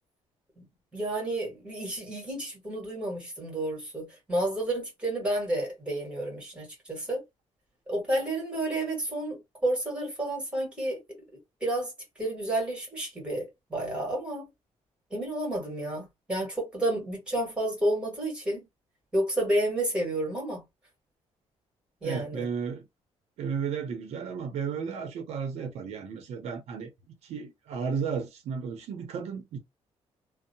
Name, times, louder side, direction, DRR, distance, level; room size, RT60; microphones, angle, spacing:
voice 1, 0.9-7.2 7.9-11.0 11.6-11.9 12.2-14.5 15.1-18.7 19.1-20.6 22.0-22.5, right 1 dB, 10° right, 1.4 m, -30 dB
voice 2, 22.0-22.8 23.4-26.9 27.2-29.6, right 6 dB, 75° right, 0.6 m, -33 dB
2.6 x 2.0 x 2.7 m
cardioid pair, 175°, 11 cm